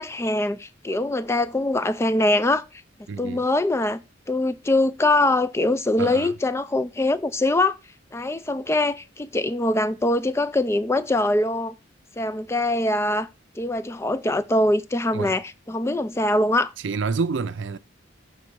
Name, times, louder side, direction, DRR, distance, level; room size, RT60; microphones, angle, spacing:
voice 1, 0.0-2.6 3.2-4.0 4.3-7.8 8.1-11.7 12.2-13.3 13.6-16.7, left 2 dB, 15° left, 0.3 m, -23 dB
voice 2, 3.1-3.4 6.0-6.3 15.1-15.3 16.8-17.8, right 4 dB, 65° right, 0.5 m, -28 dB
6.5 x 3.6 x 5.9 m
head